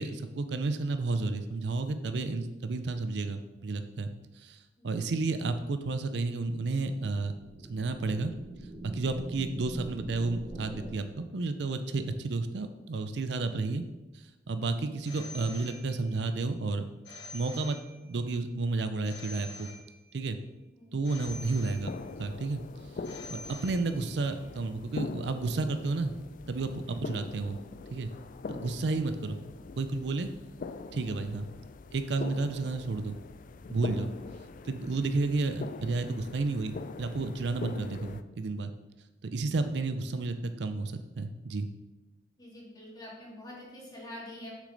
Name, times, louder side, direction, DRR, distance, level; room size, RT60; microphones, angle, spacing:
voice 1, 0.0-4.1 4.4-7.3 7.7-8.3 8.9-13.8 14.1-16.8 17.3-17.8 18.0-19.7 20.1-20.4 20.9-21.9 22.2-22.6 23.3-26.1 26.5-27.6 27.9-28.1 28.5-29.4 29.8-30.3 30.9-31.5 31.9-33.2 33.7-34.1 34.6-38.7 39.2-41.7, right 3 dB, 65° right, 9 dB, 0.5 m, -31 dB
sound 1, 6.8-10.9, right 2 dB, 30° right, 0.8 m, -44 dB
Telephone, 15.1-16.3 17.0-18.3 19.0-20.3 21.0-22.3 23.0-24.3, left 2 dB, 70° left, 1.5 m, -47 dB
sound 2, 21.3-38.2, left 4 dB, 45° left, 0.3 m, -43 dB
voice 2, 42.4-44.5, left 1 dB, 20° left, -4 dB, 2.2 m, -45 dB
6.5 x 6.5 x 3.9 m, 1.1 s
head